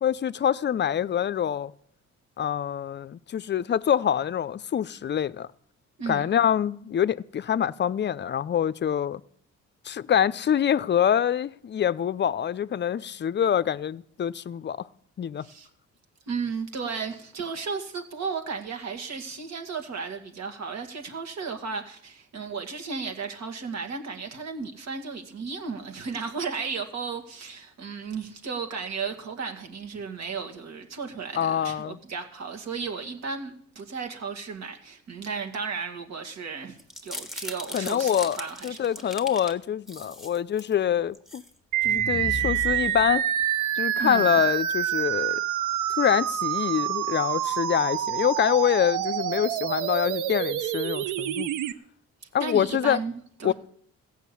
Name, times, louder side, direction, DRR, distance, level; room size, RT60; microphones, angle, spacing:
voice 1, 0.0-1.7 2.4-5.5 6.1-9.2 9.8-14.9 15.2-15.4 31.4-32.0 37.7-38.4 38.6-41.4 41.8-43.3 43.7-45.4 46.0-51.5 52.3-53.0 53.4-53.5, left 9 dB, 35° left, 0.5 m, -25 dB
voice 2, 16.3-38.8 44.0-44.4 52.4-53.5, right 5 dB, 65° right, 2.1 m, -34 dB
sound 1, 36.8-39.5 39.9-40.7 41.1-41.5 41.8-43.4, left 2 dB, ahead, 1.4 m, -37 dB
sound 2, 41.7-51.7, right 11 dB, 90° right, 0.7 m, -27 dB
15.5 x 6.3 x 8.4 m
cardioid pair, 90°, 30 cm